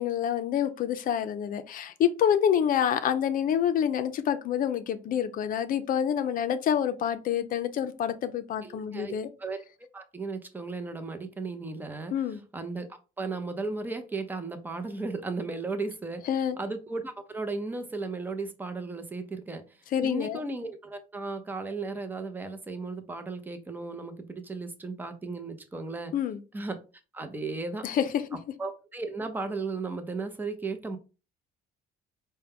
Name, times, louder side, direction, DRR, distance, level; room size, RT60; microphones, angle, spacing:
voice 1, 0.0-9.3 12.1-12.4 16.3-16.6 19.9-20.4 26.1-26.4 27.8-28.1, left 9 dB, 55° left, 0.5 m, -27 dB
voice 2, 8.6-9.6 9.9-12.1 12.5-12.9 13.2-16.2 16.6-19.6 20.0-26.1 26.5-26.8 27.1-27.9 28.6-31.0, right 3 dB, 10° right, 0.6 m, -35 dB
4.5 x 2.2 x 3.5 m
cardioid pair, 110°, 17 cm